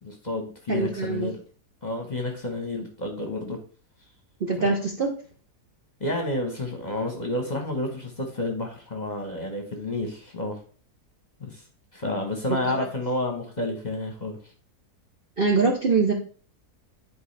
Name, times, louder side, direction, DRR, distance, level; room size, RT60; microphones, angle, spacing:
voice 1, 0.0-1.4 1.8-3.6 4.6-4.7 6.0-10.6 11.4-11.6 11.9-14.4, left 1 dB, 30° left, 3 dB, 1.1 m, -30 dB
voice 2, 0.7-1.3 4.4-5.1 12.5-12.9 15.4-16.1, right 4 dB, 45° right, 1 dB, 0.9 m, -24 dB
10.5 x 4.5 x 3.3 m, 0.41 s
omnidirectional pair, 1.7 m